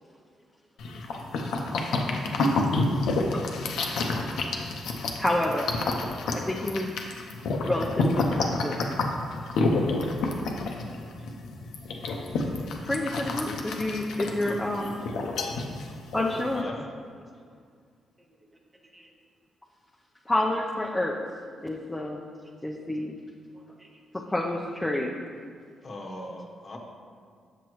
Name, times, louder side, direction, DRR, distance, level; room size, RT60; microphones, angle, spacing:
sound 1, 0.8-16.6, left 2 dB, 80° left, 0.7 m, -29 dB
voice 1, 5.2-5.7 6.3-7.0 7.6-8.8 12.9-15.0 16.1-16.7 20.3-21.2 21.6-22.2 22.6-23.2 24.1-25.1, left 1 dB, 10° left, -1 dB, 0.5 m, -29 dB
voice 2, 9.9-10.5 11.2-11.3 12.1-12.9 15.6-15.9 17.0-17.1 17.4-17.6 18.2-18.4 18.9-19.1 22.7-22.8 23.4-24.0 24.3-24.4 25.5-25.6, right 1 dB, 20° right, 1 dB, 0.9 m, -60 dB
voice 3, 16.5-16.8 25.8-26.8, left 1 dB, 40° left, 1 dB, 0.9 m, -39 dB
6.9 x 6.1 x 3.1 m, 2.1 s
cardioid pair, 90°, 0 cm